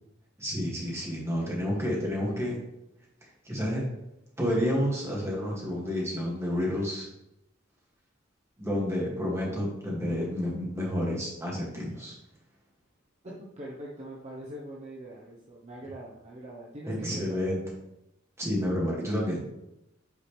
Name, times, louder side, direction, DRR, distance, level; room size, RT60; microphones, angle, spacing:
voice 1, 0.4-2.6 3.5-3.8 4.4-7.1 8.6-12.1 16.9-17.6 18.4-19.4, equal, 15° right, -4 dB, 2.1 m, -30 dB
voice 2, 13.2-17.7, right 1 dB, 35° right, -4 dB, 1.0 m, -43 dB
8.6 x 4.8 x 3.3 m, 0.85 s
head